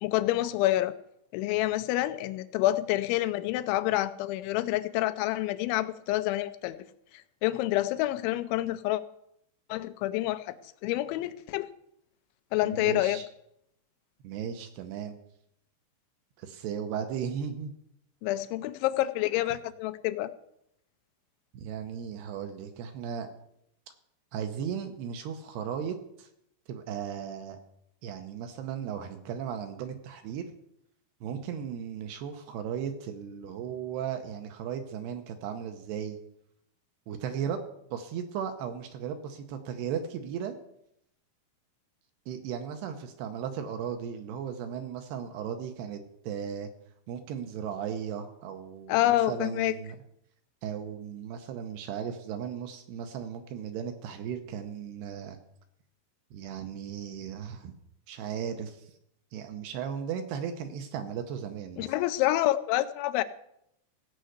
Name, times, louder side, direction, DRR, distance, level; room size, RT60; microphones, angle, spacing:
voice 1, 0.0-0.9 1.3-6.8 7.4-9.0 9.7-10.6 10.8-11.7 12.5-13.2 18.2-20.3 48.9-49.7 61.8-63.2, left 15 dB, 85° left, 12 dB, 3.0 m, -27 dB
voice 2, 12.6-13.3 14.2-15.2 16.4-17.7 21.5-23.3 24.3-26.3 26.7-27.6 28.0-30.5 31.2-36.2 37.1-37.6 37.9-40.5 42.3-46.7 47.1-50.0 50.6-55.4 56.3-57.7 58.1-58.9 59.3-61.9, right 8 dB, 75° right, 7 dB, 2.7 m, -36 dB
16.5 x 5.6 x 8.0 m, 0.77 s
omnidirectional pair, 5.3 m